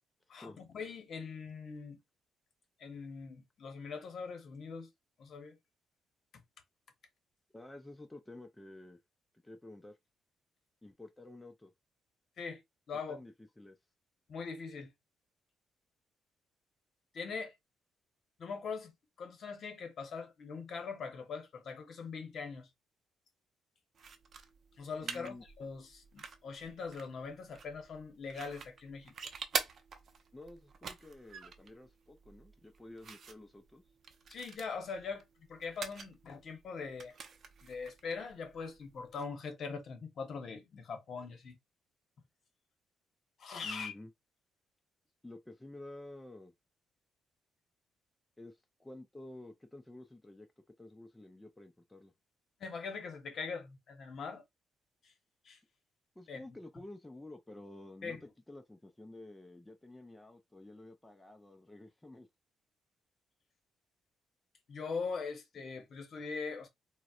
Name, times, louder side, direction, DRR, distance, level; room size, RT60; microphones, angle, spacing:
voice 1, 0.3-2.0 2.8-4.9 5.2-5.5 12.4-12.6 12.9-13.2 14.3-14.9 17.1-17.5 18.4-22.7 24.8-29.1 34.3-35.2 35.5-37.1 37.6-41.6 43.4-43.9 52.6-54.4 55.0-55.1 55.4-55.6 56.3-56.4 58.0-58.2 64.7-66.7, left 5 dB, 55° left, 0.9 m, -42 dB
voice 2, 7.5-9.0 9.4-10.0 10.8-11.7 13.1-13.8 25.0-25.4 30.3-33.8 43.6-44.1 45.2-46.5 48.4-50.5 50.8-52.1 56.2-62.3, left 1 dB, 10° left, 0.4 m, -51 dB
sound 1, 24.0-39.1, right 5 dB, 55° right, 0.6 m, -46 dB
3.9 x 2.1 x 2.3 m
cardioid pair, 90°, 0 cm